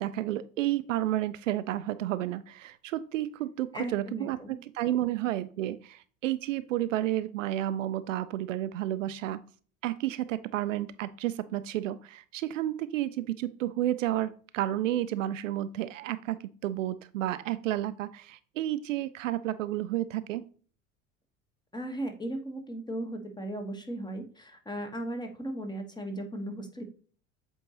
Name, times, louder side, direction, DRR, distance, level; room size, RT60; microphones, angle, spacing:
voice 1, 0.0-9.4 9.8-20.4, right 13 dB, 65° right, 14 dB, 0.5 m, -31 dB
voice 2, 3.7-4.6 21.7-26.8, right 1 dB, 10° left, 5 dB, 1.2 m, -37 dB
7.7 x 4.5 x 2.8 m, 0.42 s
figure-of-eight pair, 70°, 41 cm